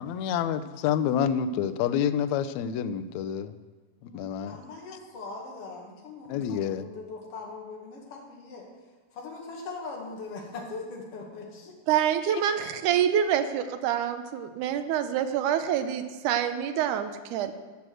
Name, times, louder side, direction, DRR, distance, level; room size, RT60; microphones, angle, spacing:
voice 1, 0.0-3.6 4.0-4.6 6.3-6.9 12.3-12.7, left 8 dB, 80° left, 11 dB, 1.7 m, -28 dB
voice 2, 4.5-8.6 9.1-11.7, left 3 dB, 50° left, -1 dB, 2.7 m, -40 dB
voice 3, 11.9-17.5, right 9 dB, 80° right, 9 dB, 2.2 m, -26 dB
11.5 x 6.2 x 7.7 m, 1.4 s
omnidirectional pair, 3.6 m